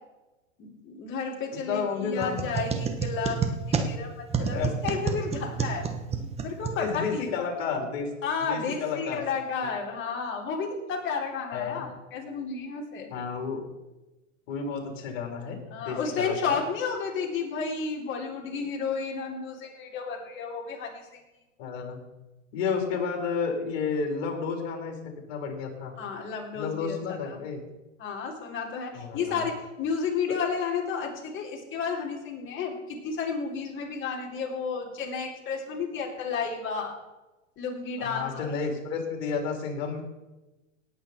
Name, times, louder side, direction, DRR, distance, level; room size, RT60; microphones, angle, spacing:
voice 1, 0.6-5.9 6.4-7.5 8.2-13.1 15.7-21.2 26.0-27.4 28.0-36.9 37.6-38.6, left 5 dB, 30° left, -1 dB, 3.5 m, -32 dB
voice 2, 1.5-2.5 3.8-4.0 4.4-4.7 6.8-8.1 8.5-9.7 11.5-11.9 13.1-13.6 14.5-16.6 21.6-22.0 22.5-25.9 26.5-27.6 28.9-29.5 38.0-40.0, left 5 dB, 55° left, 2 dB, 4.1 m, -32 dB
sound 1, 2.2-7.3, right 5 dB, 15° right, 1.2 m, -30 dB
18.0 x 8.5 x 4.5 m, 1.1 s
hypercardioid pair, 120°, 39 cm